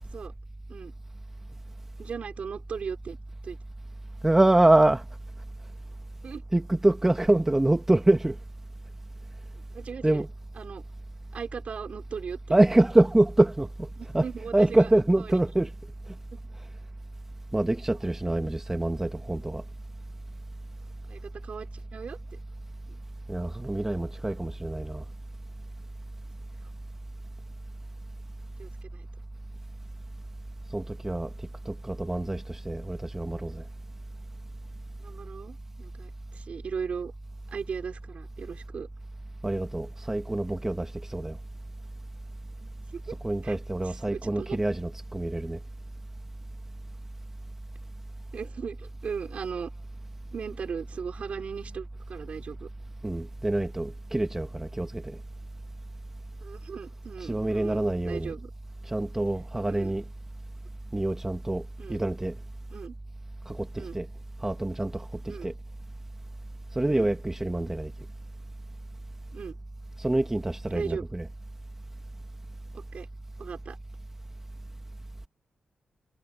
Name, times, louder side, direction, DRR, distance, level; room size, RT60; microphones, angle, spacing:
voice 1, 2.0-3.2 3.4-3.6 6.2-6.4 9.5-10.2 10.6-10.8 11.3-12.6 14.0-14.9 15.2-15.3 16.3-16.5 21.1-22.2 22.9-23.0 28.6-29.1 35.0-37.1 37.5-38.9 42.6-43.2 43.4-44.6 48.3-49.7 50.3-52.7 56.4-58.5 59.7-59.9 61.8-62.0 62.7-62.9 63.8-64.0 65.3-65.5 66.9-67.1 69.3-69.6 70.7-71.1 72.7-73.1 73.4-73.8, right 6 dB, 60° right, 3.3 m, -38 dB
voice 2, 4.2-5.0 6.5-8.4 10.0-10.3 12.5-13.9 14.1-15.7 17.5-19.6 23.3-25.0 30.7-31.3 31.7-33.6 39.4-41.4 43.2-45.6 53.0-55.2 57.2-58.3 58.9-60.0 60.9-61.6 61.9-62.4 63.5-64.1 64.4-65.5 66.8-67.9 70.0-71.3, right 1 dB, 15° right, 2.2 m, -25 dB
cardioid pair, 75°, 3 cm